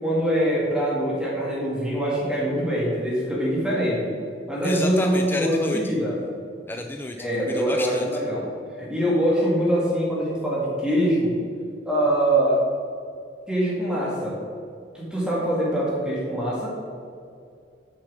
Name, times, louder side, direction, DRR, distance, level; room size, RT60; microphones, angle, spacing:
voice 1, 0.0-4.2 4.5-6.2 7.2-8.5 8.8-11.4 11.9-12.6 13.5-14.4 14.9-16.7, right 1 dB, 5° right, -6 dB, 2.0 m, -23 dB
voice 2, 4.6-5.9 6.7-8.1, left 2 dB, 10° left, 4 dB, 0.4 m, -30 dB
6.8 x 6.6 x 6.2 m, 2.3 s
head